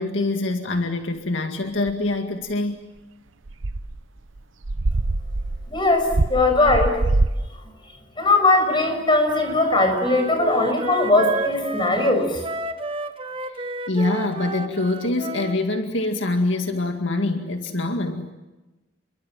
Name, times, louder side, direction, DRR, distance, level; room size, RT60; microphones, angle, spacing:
voice 1, 0.0-2.9 13.5-18.3, left 2 dB, 75° left, 2.1 m, -25 dB
sound 1, 1.9-2.0 3.5-4.0 4.4-4.5 4.6-7.5, right 2 dB, 85° right, 0.9 m, -23 dB
voice 2, 5.7-6.9 8.2-12.4, left 2 dB, 25° left, 6.3 m, -19 dB
Wind instrument woodwind instrument, 9.3-15.6, right 2 dB, 25° right, 1.3 m, -31 dB
29.0 x 23.0 x 7.6 m
head